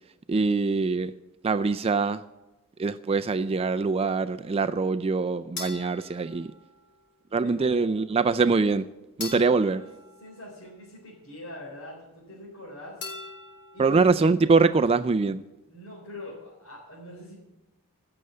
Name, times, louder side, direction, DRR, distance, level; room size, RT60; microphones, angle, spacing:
voice 1, 0.3-1.1 1.4-2.2 2.8-6.5 7.3-8.9 9.2-9.8 13.8-15.4, right 4 dB, 25° right, 10 dB, 0.3 m, -23 dB
sound 1, 5.6-7.1 9.2-11.0 13.0-14.1, left 3 dB, 50° left, 3.8 m, -42 dB
voice 2, 7.4-7.9 9.2-9.9 10.2-13.0 13.7-14.0 15.7-17.3, left 1 dB, 65° left, -4 dB, 3.9 m, -43 dB
16.0 x 6.8 x 7.8 m, 1.1 s
head